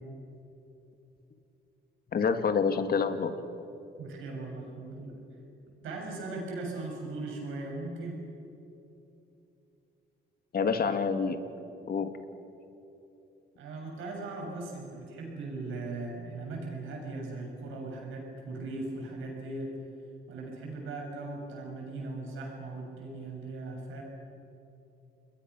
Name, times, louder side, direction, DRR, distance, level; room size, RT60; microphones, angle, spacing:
voice 1, 2.1-3.4 10.5-11.5 11.9-12.1, left 5 dB, 50° left, 8 dB, 2.0 m, -27 dB
voice 2, 4.0-5.2 5.8-8.3 13.6-19.7 20.3-24.0, right 2 dB, 85° right, -1 dB, 7.1 m, -38 dB
29.5 x 21.0 x 6.2 m, 2.9 s
cardioid pair, 90°, 20 cm